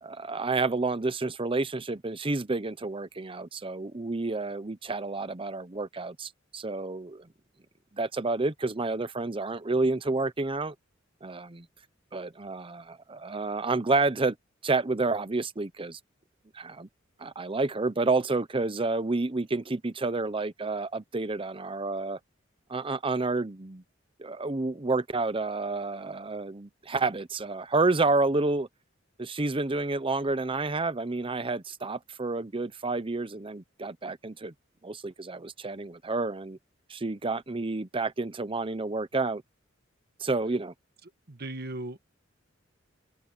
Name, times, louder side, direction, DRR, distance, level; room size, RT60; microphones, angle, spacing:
voice 1, 0.0-7.3 7.9-10.7 11.2-11.7 12.1-14.3 14.6-16.0 16.5-16.9 17.2-22.2 22.7-23.8 24.2-28.7 29.2-34.5 34.8-36.6 36.9-39.4 40.2-40.7, right 3 dB, 25° right, 0.8 m, -29 dB
voice 2, 41.3-42.1, right 1 dB, 55° right, 1.7 m, -37 dB
head